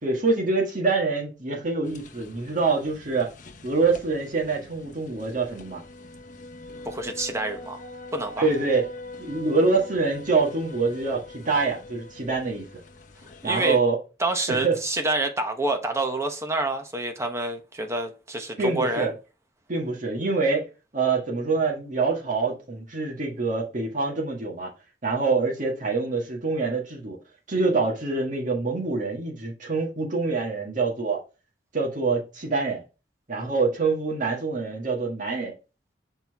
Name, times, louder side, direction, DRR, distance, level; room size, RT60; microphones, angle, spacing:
voice 1, 0.0-3.3 3.6-5.8 8.4-8.9 9.2-12.6 13.4-14.0 14.5-14.8 18.6-19.1 19.7-20.7 20.9-24.7 25.0-27.2 27.5-31.2 31.7-32.8 33.3-35.5, right 4 dB, 45° right, 1.7 m, -25 dB
sound 1, 1.8-13.6, left 2 dB, 45° left, 0.9 m, -43 dB
voice 2, 6.8-7.8 8.1-8.5 13.4-13.8 14.2-19.1, right 2 dB, 15° right, 1.0 m, -27 dB
6.3 x 4.4 x 3.5 m
head